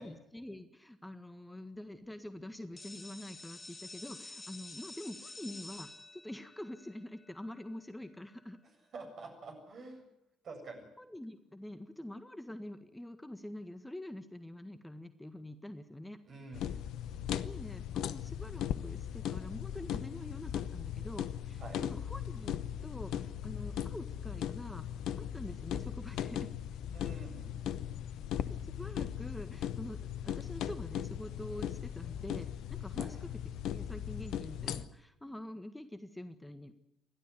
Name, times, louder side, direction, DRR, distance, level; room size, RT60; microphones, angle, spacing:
voice 1, 0.0-8.6 11.0-16.2 17.4-24.8 25.2-26.5 28.5-33.3 33.7-36.7, left 1 dB, 10° left, 10 dB, 1.6 m, -46 dB
sound 1, 2.8-8.4, left 2 dB, 30° left, 3.1 m, -50 dB
voice 2, 8.9-10.1 10.4-10.8 16.3-16.8 21.6-21.8 26.9-27.5 33.0-33.1, right 3 dB, 50° right, 4 dB, 7.5 m, -47 dB
sound 2, 16.5-34.9, left 10 dB, 65° left, 0.9 m, -38 dB
29.5 x 12.5 x 9.7 m, 0.83 s
figure-of-eight pair, 45°, 0 cm